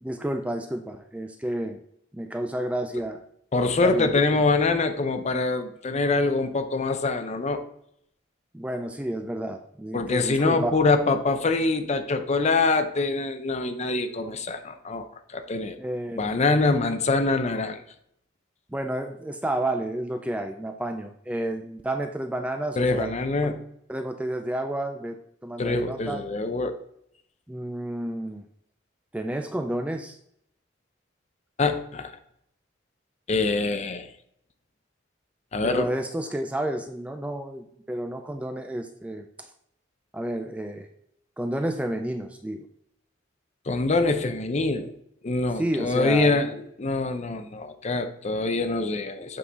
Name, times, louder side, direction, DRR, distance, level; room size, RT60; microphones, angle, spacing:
voice 1, 0.0-1.8 2.1-3.2 3.8-4.2 8.5-10.8 15.8-16.3 16.8-17.0 18.7-23.1 23.9-26.2 27.5-28.4 29.1-30.2 35.6-39.5 40.1-40.9 41.4-42.7 45.6-46.4, right 1 dB, 5° right, 6 dB, 0.4 m, -30 dB
voice 2, 3.5-7.6 9.9-15.8 16.2-17.8 22.8-23.6 25.6-26.8 31.6-32.1 33.3-34.1 35.5-35.9 43.7-45.0 45.2-49.4, left 3 dB, 35° left, 8 dB, 0.6 m, -24 dB
8.4 x 3.8 x 4.0 m, 0.72 s
head